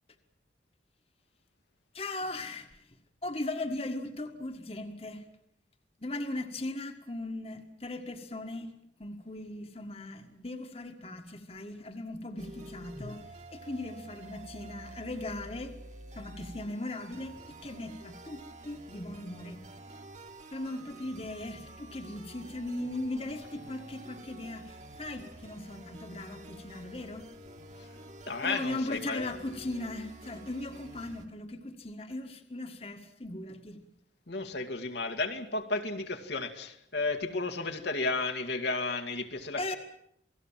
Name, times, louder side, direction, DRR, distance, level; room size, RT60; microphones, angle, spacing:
voice 1, 1.9-3.0 3.2-5.3 6.0-8.7 9.0-15.7 16.2-19.6 20.5-27.3 28.4-33.8 39.6-39.8, left 2 dB, 30° left, 1.8 m, -38 dB
sound 1, 12.4-31.3, right 1 dB, 40° right, 2.2 m, -49 dB
voice 2, 28.3-29.3 34.3-39.8, left 3 dB, 70° left, 2.1 m, -33 dB
28.5 x 19.0 x 7.5 m
head